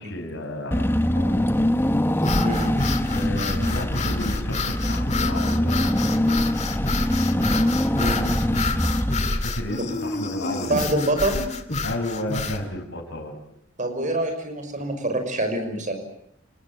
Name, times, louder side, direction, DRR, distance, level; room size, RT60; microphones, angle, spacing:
voice 1, 0.0-1.6 3.0-7.3 9.2-10.8 11.8-13.4, left 1 dB, 60° left, 3 dB, 6.4 m, -33 dB
Car / Engine, 0.7-9.9, left 1 dB, 10° left, 1.1 m, -23 dB
sound 1, 2.2-12.6, left 3 dB, 35° left, 2.4 m, -29 dB
voice 2, 2.4-2.7 7.9-8.3 9.8-9.9 10.7-11.5 13.8-15.9, right 1 dB, 40° right, 6 dB, 6.0 m, -25 dB
29.5 x 20.0 x 9.1 m, 0.70 s
head